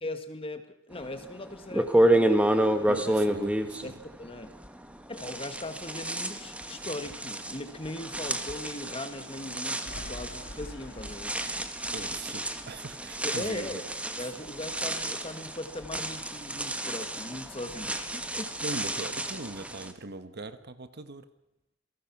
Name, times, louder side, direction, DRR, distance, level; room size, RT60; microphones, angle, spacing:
voice 1, 0.0-2.9 3.8-4.5 5.1-11.3 12.1-12.2 13.2-13.8 14.2-18.5, left 1 dB, 30° left, 9 dB, 1.7 m, -39 dB
sound 1, 1.2-1.3 1.7-4.9 5.2-19.9, right 1 dB, 5° right, 1.3 m, -30 dB
voice 2, 2.9-4.0 11.9-13.8 18.6-21.3, right 2 dB, 55° right, 11 dB, 1.2 m, -40 dB
Thunder, 9.8-15.3 15.6-17.1 17.4-19.1, left 1 dB, 60° left, 2.3 m, -49 dB
27.5 x 18.5 x 6.0 m, 0.85 s
head